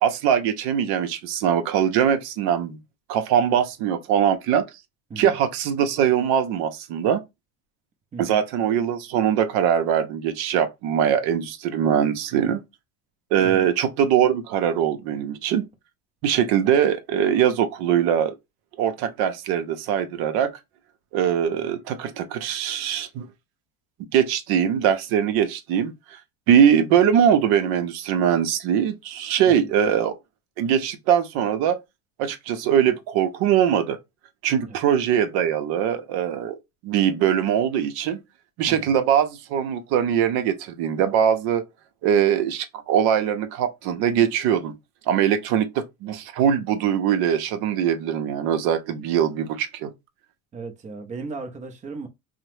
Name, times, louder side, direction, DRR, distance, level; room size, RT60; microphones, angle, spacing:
voice 1, 0.0-2.8 3.1-4.6 5.2-7.2 8.2-12.6 13.3-15.6 16.2-18.3 18.8-20.5 21.1-23.3 24.1-26.2 26.5-30.1 30.6-31.8 32.2-34.0 34.4-36.6 36.8-38.2 38.6-41.6 42.0-44.7 45.1-49.9, right 9 dB, 70° right, 0.6 m, -22 dB
voice 2, 13.4-13.7 29.5-29.7 34.6-34.8 38.7-38.9 50.5-52.1, right 4 dB, 20° right, 0.5 m, -36 dB
2.8 x 2.1 x 3.0 m
cardioid pair, 120°, 39 cm